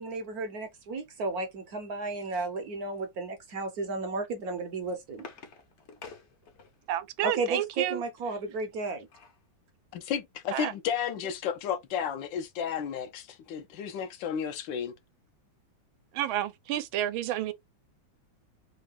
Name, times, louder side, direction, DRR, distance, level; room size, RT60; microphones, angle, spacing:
voice 1, 0.0-5.3 7.2-9.1, right 3 dB, 65° right, 1.0 m, -33 dB
sound 1, 4.5-7.0 8.6-9.5 9.9-10.0 10.3-10.5, left 5 dB, 50° left, 0.8 m, -50 dB
voice 2, 6.9-8.0 10.5-10.7 16.1-17.5, right 12 dB, 85° right, 1.4 m, -30 dB
voice 3, 9.9-14.9, left 8 dB, 75° left, 1.3 m, -33 dB
3.7 x 2.2 x 3.4 m
omnidirectional pair, 2.2 m